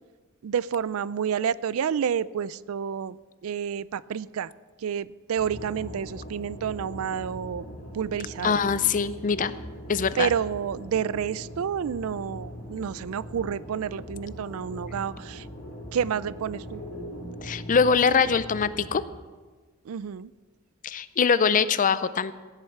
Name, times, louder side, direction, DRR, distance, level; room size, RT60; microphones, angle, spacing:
voice 1, 0.4-3.2 3.4-4.5 4.8-7.7 7.9-8.6 10.2-15.5 15.9-16.8 19.9-20.3, right 8 dB, 70° right, 19 dB, 0.4 m, -29 dB
sound 1, 5.3-19.0, equal, 85° left, 4.6 m, -40 dB
voice 2, 8.4-9.5 9.9-10.3 17.4-19.0 20.8-22.3, left 6 dB, 35° left, 15 dB, 0.4 m, -23 dB
16.0 x 7.9 x 5.9 m, 1.4 s
head